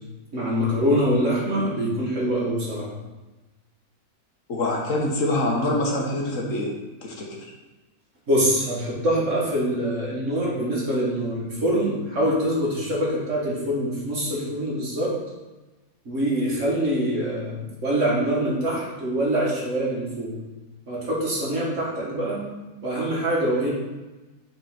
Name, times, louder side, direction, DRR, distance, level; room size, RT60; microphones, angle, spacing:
voice 1, 0.3-2.9 8.3-15.1 16.1-20.3 20.9-22.4 22.8-23.7, equal, 55° right, -4 dB, 2.0 m, -24 dB
voice 2, 4.5-6.7 7.0-7.3, left 1 dB, 60° left, -1 dB, 1.5 m, -25 dB
5.5 x 4.5 x 5.7 m, 1.1 s
omnidirectional pair, 1.6 m